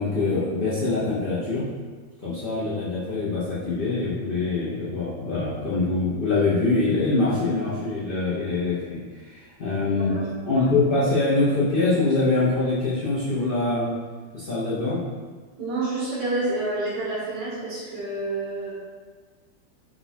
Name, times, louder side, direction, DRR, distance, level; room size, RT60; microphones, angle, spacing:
voice 1, 0.0-1.7 2.2-10.1 10.4-13.9 14.3-15.0, left 3 dB, 50° left, -10 dB, 0.6 m, -24 dB
voice 2, 15.6-18.7, right 2 dB, 80° right, -9 dB, 1.8 m, -29 dB
4.5 x 2.4 x 4.1 m, 1.5 s
omnidirectional pair, 2.0 m